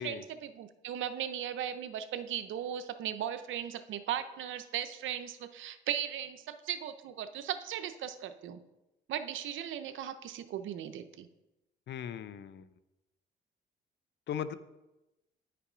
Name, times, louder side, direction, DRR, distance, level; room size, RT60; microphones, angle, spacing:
voice 1, 0.0-8.6 9.1-11.3, right 10 dB, 75° right, 11 dB, 0.6 m, -37 dB
voice 2, 11.9-12.7 14.3-14.5, left 8 dB, 60° left, 13 dB, 0.6 m, -38 dB
9.4 x 5.8 x 5.0 m, 0.98 s
cardioid pair, 90°, 20 cm